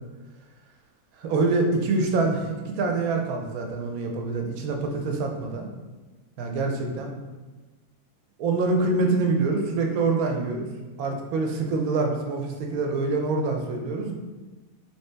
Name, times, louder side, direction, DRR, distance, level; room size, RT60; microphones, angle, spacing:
voice 1, 1.2-5.7 6.4-7.1 8.4-10.7 11.0-14.1, right 3 dB, 75° right, 2 dB, 1.0 m, -25 dB
3.1 x 2.8 x 3.3 m, 1.2 s
omnidirectional pair, 1.6 m